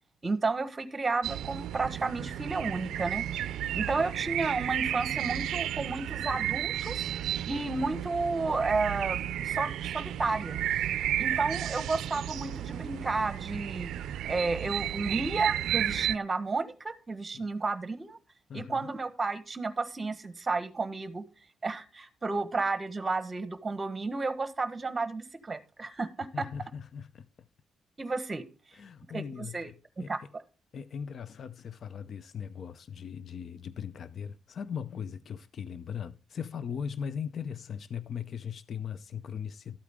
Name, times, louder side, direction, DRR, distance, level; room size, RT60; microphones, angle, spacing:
voice 1, 0.2-3.2 3.7-10.6 11.2-13.9 14.3-18.2 18.5-21.2 21.6-26.5 28.0-28.5 29.1-29.7 30.1-30.4, right 3 dB, 25° right, 1.2 m, -32 dB
sound 1, 1.2-16.2, right 11 dB, 85° right, 0.4 m, -33 dB
voice 2, 18.5-18.9 26.3-27.3 28.7-30.1 30.7-39.8, left 7 dB, 50° left, 0.5 m, -39 dB
13.0 x 8.4 x 3.6 m
cardioid pair, 120°, 0 cm